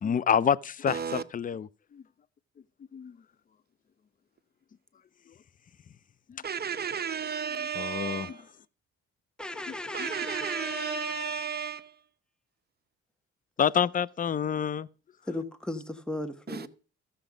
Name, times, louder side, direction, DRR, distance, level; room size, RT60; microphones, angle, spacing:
voice 1, 0.0-2.0 2.9-3.2 6.3-6.4 7.8-8.3 10.0-10.1 13.6-14.9, left 8 dB, 30° left, 0.4 m, -28 dB
voice 2, 0.9-1.2 6.4-8.5 9.9-12.0 16.5-16.7, right 7 dB, 30° right, 0.8 m, -33 dB
voice 3, 9.4-11.5 15.3-16.7, left 2 dB, 5° left, 1.1 m, -36 dB
13.5 x 7.0 x 5.1 m
cardioid pair, 90°, 30 cm